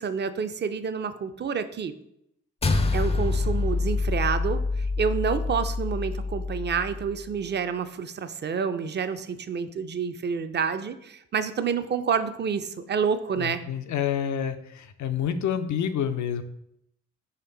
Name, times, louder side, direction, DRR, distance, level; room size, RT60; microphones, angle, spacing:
voice 1, 0.0-1.9 2.9-13.6, right 6 dB, 35° right, 11 dB, 0.4 m, -28 dB
sound 1, 2.6-7.2, left 3 dB, 20° left, 0.5 m, -26 dB
voice 2, 13.4-16.4, left 8 dB, 70° left, 10 dB, 0.5 m, -28 dB
4.4 x 3.2 x 3.8 m, 0.78 s
supercardioid pair, 45°, 30 cm